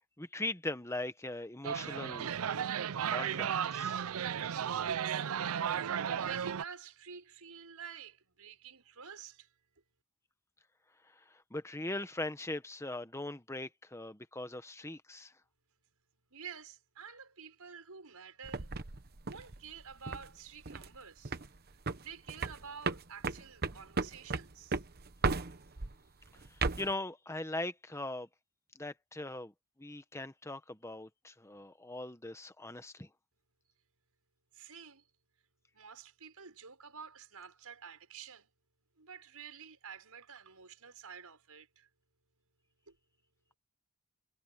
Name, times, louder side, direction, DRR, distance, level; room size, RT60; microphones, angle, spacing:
voice 1, 0.2-2.7 3.1-4.0 11.1-15.3 26.3-28.3 28.7-29.5 29.8-33.1, left 2 dB, 15° left, 1.2 m, -40 dB
sound 1, 1.6-6.6, right 8 dB, 70° right, 0.5 m, -34 dB
voice 2, 5.0-5.7 6.1-9.5 16.3-18.7 19.2-21.4 22.0-24.8 34.5-35.0 35.7-38.5 39.0-41.9 42.9-43.0, right 6 dB, 90° right, 5.6 m, -50 dB
sound 2, 18.4-20.3 20.7-21.0 21.2-21.6 21.9-26.0 26.4-26.9, right 4 dB, 45° right, 1.0 m, -35 dB
head